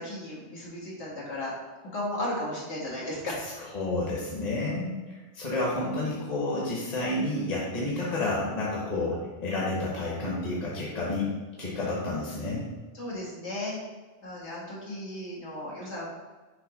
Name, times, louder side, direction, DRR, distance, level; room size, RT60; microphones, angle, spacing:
voice 1, 0.0-1.5 1.8-3.4 12.9-13.8 14.2-16.1, left 1 dB, 75° left, -5 dB, 1.9 m, -35 dB
voice 2, 3.7-11.3 11.6-12.6, left 2 dB, 40° left, -5 dB, 1.2 m, -30 dB
6.3 x 2.9 x 5.0 m, 1.3 s
omnidirectional pair, 1.2 m